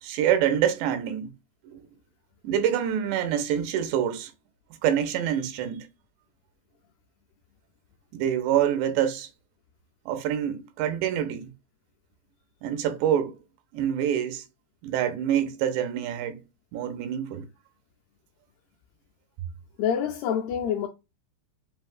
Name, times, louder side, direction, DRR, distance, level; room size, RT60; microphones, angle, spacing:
voice 1, 0.0-1.3 1.6-1.8 2.4-4.3 4.8-5.9 8.1-9.3 10.1-11.5 12.6-13.3 13.7-14.4 14.8-16.4 16.7-17.5, right 9 dB, 90° right, 2.9 m, -26 dB
voice 2, 19.8-20.9, left 8 dB, 85° left, 2.3 m, -26 dB
7.8 x 2.7 x 2.4 m
omnidirectional pair, 5.0 m